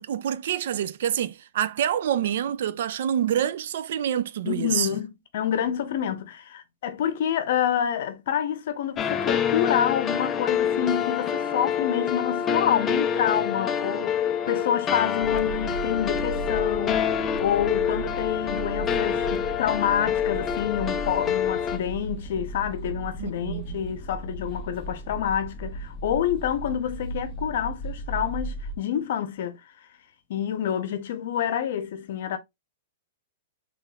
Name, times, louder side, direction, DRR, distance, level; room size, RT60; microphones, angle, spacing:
voice 1, 0.0-4.9 23.2-23.8, right 10 dB, 60° right, 0.3 m, -27 dB
voice 2, 4.4-17.1 17.4-29.6 30.3-32.4, left 9 dB, 55° left, 0.7 m, -28 dB
sound 1, 9.0-21.8, left 8 dB, 15° left, 0.4 m, -26 dB
sound 2, 15.2-28.8, right 2 dB, ahead, 1.0 m, -36 dB
4.0 x 3.1 x 2.3 m
supercardioid pair, 170°, 0 cm